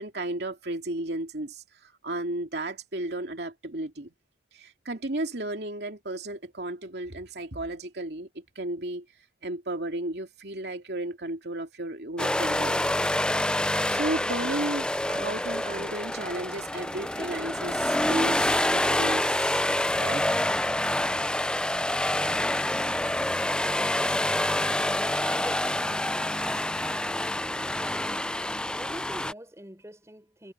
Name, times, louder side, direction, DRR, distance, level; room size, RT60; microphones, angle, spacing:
voice 1, 0.0-4.1 4.5-9.1 9.4-12.8 13.9-19.6 20.0-20.3, right 1 dB, 65° right, 2.6 m, -34 dB
sound 1, 12.2-29.3, left 1 dB, 5° left, 0.5 m, -27 dB
voice 2, 24.9-26.0 26.8-27.3 28.7-30.5, right 1 dB, 15° right, 6.2 m, -44 dB
head